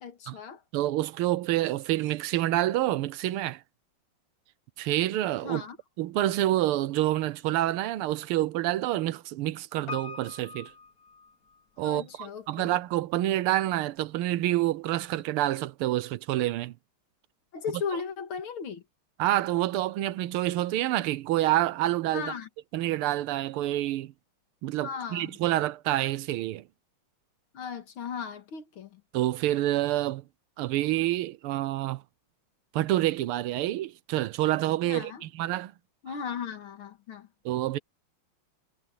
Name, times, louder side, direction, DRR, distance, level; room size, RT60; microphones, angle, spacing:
voice 1, 0.0-0.6 5.4-5.8 11.8-12.8 17.5-18.8 22.1-22.5 24.8-25.4 27.5-29.0 34.8-35.2 36.0-37.3, left 6 dB, 75° left, 2.5 m, -36 dB
voice 2, 0.7-3.6 4.8-5.6 6.0-10.7 11.8-16.7 19.2-22.3 22.7-24.1 24.6-26.6 29.1-30.2 30.6-32.0 32.7-35.7 37.5-37.8, right 15 dB, 90° right, 1.6 m, -27 dB
Piano, 9.9-11.9 12.2-12.3, left 4 dB, 45° left, 1.6 m, -42 dB
omnidirectional pair, 2.3 m